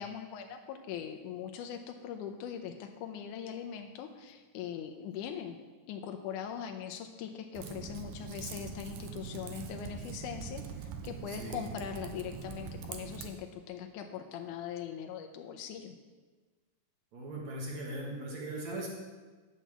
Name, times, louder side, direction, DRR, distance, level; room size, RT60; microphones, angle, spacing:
voice 1, 0.0-5.6 5.9-16.0, left 8 dB, 80° left, 4 dB, 1.9 m, -41 dB
Typing, 7.5-13.3, right 6 dB, 75° right, 2.3 m, -43 dB
voice 2, 11.2-11.7 17.1-18.9, right 1 dB, 55° right, -3 dB, 2.8 m, -39 dB
9.4 x 7.5 x 7.2 m, 1.3 s
omnidirectional pair, 4.1 m